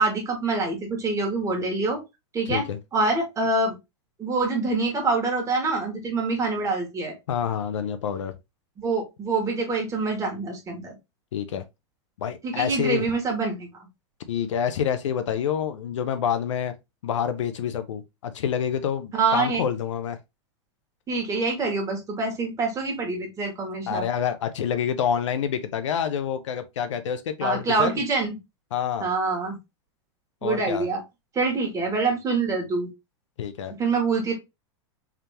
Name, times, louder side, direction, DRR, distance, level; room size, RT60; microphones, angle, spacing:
voice 1, 0.0-2.0 2.3-2.7 2.9-3.7 4.2-7.1 8.8-10.9 12.4-13.9 19.1-19.6 21.1-24.1 27.4-28.4 29.0-29.6 30.4-31.0 31.3-32.9 33.8-34.3, right 3 dB, 20° right, 1.9 m, -25 dB
voice 2, 2.5-2.8 7.3-8.3 11.3-11.6 12.2-13.1 14.3-16.7 17.0-20.2 23.9-28.0 28.7-29.1 30.4-30.9 33.4-33.7, left 8 dB, 90° left, 0.8 m, -27 dB
3.7 x 3.5 x 2.9 m
supercardioid pair, 130°, 15 cm